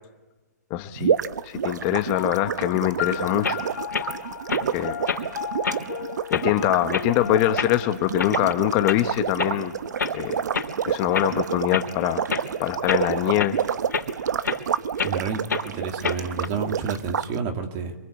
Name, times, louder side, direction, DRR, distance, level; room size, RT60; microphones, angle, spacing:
voice 1, 0.7-1.1 1.4-3.6 4.7-5.0 6.3-9.7 10.1-10.4 10.9-12.3 12.6-13.6, left 15 dB, 30° left, 8 dB, 1.1 m, -23 dB
sound 1, 1.0-17.3, right 8 dB, 70° right, 1.0 m, -29 dB
sound 2, 2.2-11.0, left 10 dB, 55° left, 0.9 m, -37 dB
sound 3, 3.4-3.6 3.9-4.1 4.5-4.6 5.1-5.3 5.6-5.8 6.3-6.5 6.9-7.1 7.6-7.7 8.2-8.5 8.8-9.0 9.4-9.5 10.0-10.1 10.5-10.7 11.1-11.3 11.7-11.9 12.3-12.5 12.9-13.0 13.4-13.5 13.9-14.1 14.4-14.6 15.0-15.1 15.5-15.7 16.0-16.5, left 6 dB, 85° left, 3.6 m, -27 dB
voice 2, 15.0-17.9, right 5 dB, 30° right, 4 dB, 2.8 m, -30 dB
26.5 x 24.0 x 8.3 m, 1.1 s
hypercardioid pair, 145°, 10 cm